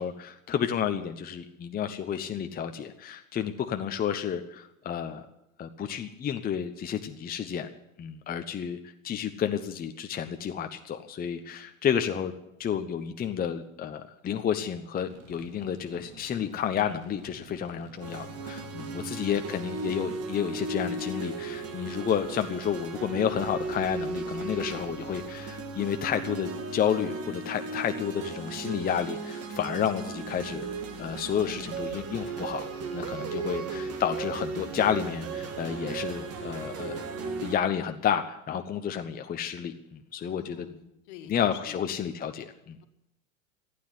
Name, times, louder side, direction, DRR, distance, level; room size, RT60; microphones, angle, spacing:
voice 1, 0.0-5.3 5.6-7.7 8.0-12.3 12.6-30.7 31.0-32.7 32.9-37.0 37.4-40.7 41.3-42.8, left 8 dB, 20° left, 6 dB, 0.9 m, -31 dB
sound 1, 15.1-24.8, right 4 dB, 60° right, 2.6 m, -51 dB
sound 2, 18.0-37.6, right 4 dB, 35° right, 2.2 m, -36 dB
voice 2, 33.2-33.7 40.2-41.8, left 8 dB, 55° left, 7 dB, 1.9 m, -48 dB
15.0 x 9.8 x 9.6 m, 0.88 s
hypercardioid pair, 90°, 40 cm